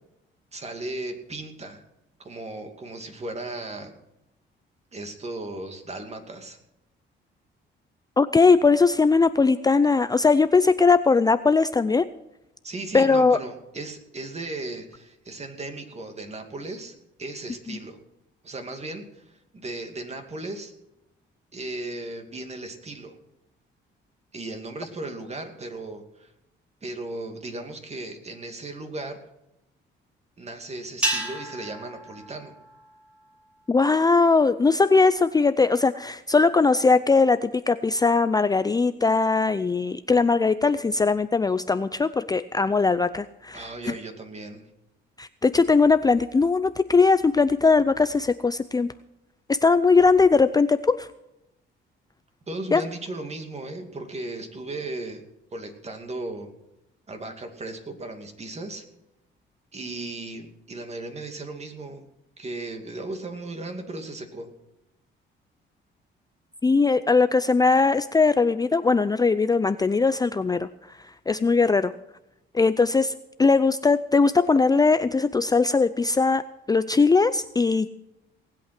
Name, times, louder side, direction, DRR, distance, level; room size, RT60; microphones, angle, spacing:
voice 1, 0.5-1.8 2.2-3.9 4.9-6.6 12.6-18.0 18.4-20.7 21.5-23.2 24.3-26.3 26.8-29.2 30.4-32.5 43.5-44.6 52.5-55.2 55.5-56.5 57.1-58.8 59.7-62.0 62.4-64.5, right 2 dB, 35° right, 5 dB, 2.5 m, -36 dB
voice 2, 8.2-12.1 12.9-13.4 33.7-44.0 45.2-48.9 49.5-51.1 52.7-52.8 66.6-70.7 71.3-71.9 72.5-73.1 73.4-76.4 76.7-77.9, left 4 dB, 20° left, 12 dB, 0.5 m, -20 dB
sound 1, 31.0-33.5, right 1 dB, 5° right, 3.5 m, -32 dB
19.0 x 8.4 x 6.0 m, 0.87 s
cardioid pair, 90°, 20 cm